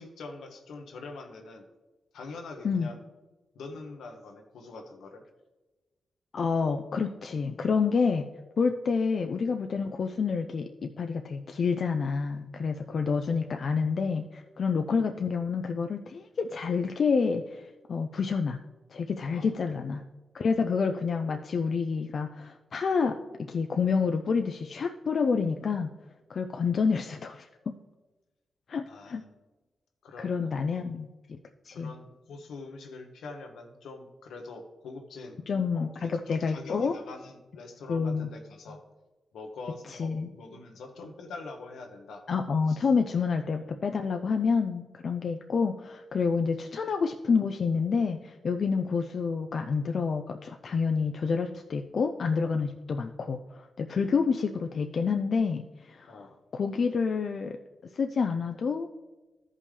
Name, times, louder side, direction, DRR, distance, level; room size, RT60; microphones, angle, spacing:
voice 1, 0.0-1.7 2.1-3.0 3.5-5.2 12.9-13.1 19.3-19.5 28.9-29.3 30.0-31.0 31.7-35.4 35.7-38.8 39.3-42.2 42.7-42.8 43.2-43.4 54.0-54.2 56.1-56.3, left 3 dB, 90° left, 4 dB, 1.1 m, -44 dB
voice 2, 6.3-8.3 8.6-18.6 18.9-20.0 20.3-25.9 26.3-27.5 28.7-29.2 30.2-31.1 31.6-31.9 35.5-36.9 37.9-38.3 39.9-40.3 42.3-56.2 56.5-57.6 57.9-58.9, left 5 dB, 65° left, 5 dB, 0.4 m, -28 dB
13.5 x 5.4 x 3.3 m, 1.2 s
cardioid pair, 65°, 0 cm